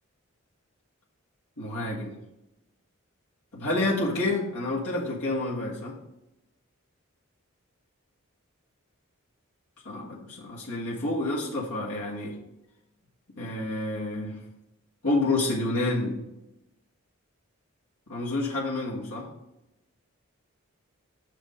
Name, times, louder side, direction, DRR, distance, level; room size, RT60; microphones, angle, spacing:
voice 1, 1.6-2.1 3.5-6.0 9.9-12.4 13.4-14.4 15.0-16.2 18.1-19.3, left 2 dB, 90° left, -5 dB, 1.7 m, -29 dB
6.9 x 5.1 x 5.0 m, 0.91 s
head